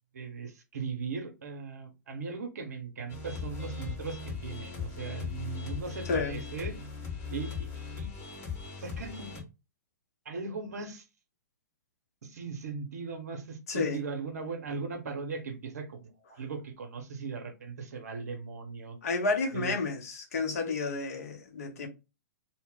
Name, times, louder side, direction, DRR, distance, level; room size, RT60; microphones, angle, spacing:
voice 1, 0.1-6.8 7.3-7.7 8.0-8.4 8.8-9.3 10.2-11.0 12.2-19.0 19.5-19.7, right 4 dB, 60° right, 0.8 m, -38 dB
sound 1, 3.1-9.4, left 5 dB, 25° left, 0.9 m, -39 dB
voice 2, 6.1-6.4 13.7-14.0 19.0-21.9, left 3 dB, 55° left, 0.7 m, -31 dB
2.0 x 2.0 x 3.7 m
figure-of-eight pair, 105°, 10 cm